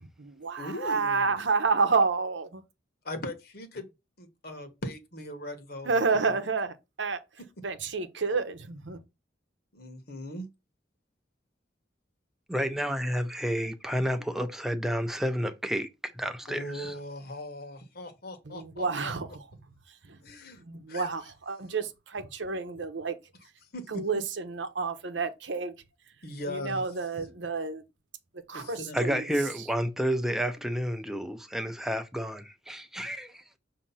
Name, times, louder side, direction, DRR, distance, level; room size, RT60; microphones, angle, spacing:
voice 1, 0.0-2.6 5.8-7.2 7.6-9.0 18.4-19.4 20.0-20.2 20.6-23.2 23.9-25.7 26.5-27.8 28.5-29.2 29.6-29.7, right 4 dB, 75° right, 0.9 m, -30 dB
voice 2, 0.6-1.4 3.0-3.9 4.2-5.9 6.2-6.4 9.7-10.5 16.5-19.1 20.2-20.6 20.9-21.1 23.7-24.0 26.2-26.8 28.5-29.5, left 1 dB, 55° left, 1.1 m, -39 dB
voice 3, 12.5-15.9 16.1-16.9 28.9-33.4, equal, ahead, 0.6 m, -30 dB
6.2 x 2.8 x 5.6 m
head